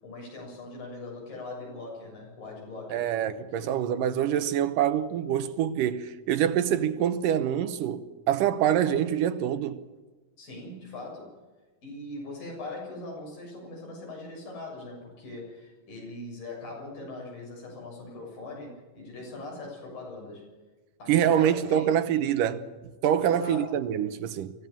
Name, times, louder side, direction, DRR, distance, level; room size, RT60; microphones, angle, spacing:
voice 1, 0.0-3.1 3.5-3.8 10.4-11.3 11.8-20.4 21.0-21.9 23.2-23.8, left 2 dB, 85° left, 9.0 m, -41 dB
voice 2, 2.9-9.8 21.1-22.6 23.0-24.5, right 10 dB, 80° right, 2.6 m, -25 dB
23.5 x 16.5 x 7.2 m
omnidirectional pair, 3.9 m